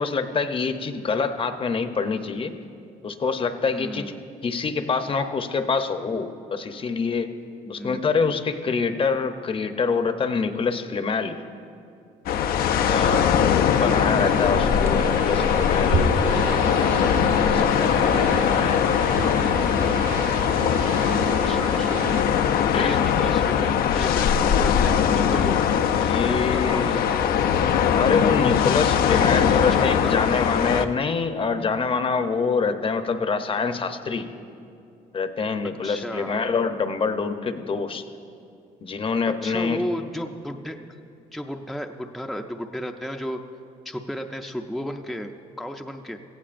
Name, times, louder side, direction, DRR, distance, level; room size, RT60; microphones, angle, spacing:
voice 1, 0.0-2.6 3.0-4.2 4.4-7.3 7.7-11.4 12.9-19.5 19.8-19.9 22.7-23.0 25.9-27.1 27.9-34.3 35.1-38.0 38.8-39.8, left 5 dB, 35° left, 8 dB, 0.8 m, -26 dB
voice 2, 3.7-4.2 7.7-8.0 13.0-13.4 21.1-22.1 22.8-25.6 26.2-27.3 29.1-30.1 35.8-36.4 39.4-40.8 41.3-43.4 43.8-46.2, equal, ahead, 3 dB, 0.5 m, -34 dB
sound 1, 12.3-30.9, left 8 dB, 75° left, 0.5 m, -21 dB
sound 2, 13.9-22.2, right 4 dB, 65° right, 1.0 m, -31 dB
17.5 x 15.0 x 2.5 m, 2.6 s
cardioid pair, 95°, 16 cm